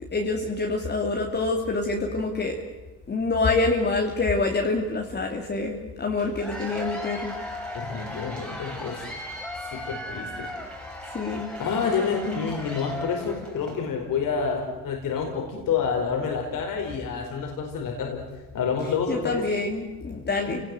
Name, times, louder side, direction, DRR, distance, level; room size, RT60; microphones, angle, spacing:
voice 1, 0.1-2.6 3.1-7.3 11.1-11.5 18.8-20.6, left 3 dB, 25° left, 1 dB, 2.9 m, -26 dB
Cheering / Applause / Crowd, 6.2-13.8, equal, ahead, 4.6 m, -36 dB
voice 2, 7.7-9.0 9.5-10.5 11.6-18.2 18.5-19.4, left 6 dB, 60° left, 1 dB, 4.8 m, -28 dB
29.0 x 19.0 x 7.9 m, 1.2 s
cardioid pair, 115°, 37 cm